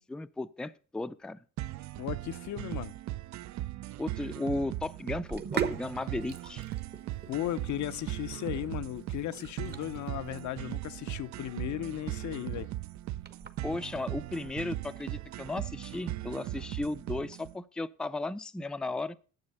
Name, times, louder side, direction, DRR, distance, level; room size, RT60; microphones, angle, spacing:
voice 1, 0.0-1.4 4.0-6.6 13.6-19.2, left 2 dB, 5° left, 0.4 m, -35 dB
sound 1, 1.6-17.5, right 15 dB, 65° right, 0.4 m, -39 dB
voice 2, 2.0-2.9 7.3-12.7, left 13 dB, 70° left, 0.6 m, -36 dB
Sink (filling or washing), 5.1-16.0, right 7 dB, 35° right, 1.0 m, -42 dB
9.8 x 7.2 x 5.3 m
cardioid pair, 90°, 30 cm